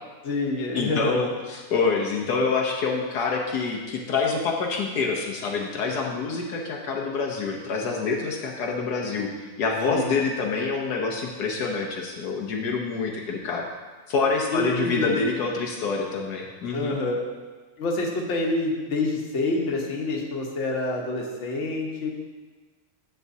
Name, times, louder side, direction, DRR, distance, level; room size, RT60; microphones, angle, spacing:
voice 1, 0.2-1.2 9.8-10.1 14.5-15.2 16.7-17.3 17.8-22.1, left 2 dB, 50° left, -1 dB, 1.3 m, -27 dB
voice 2, 0.7-9.3 9.6-13.7 14.1-16.9, left 4 dB, 75° left, 0 dB, 1.4 m, -26 dB
10.0 x 7.4 x 2.7 m, 1.4 s
omnidirectional pair, 1.7 m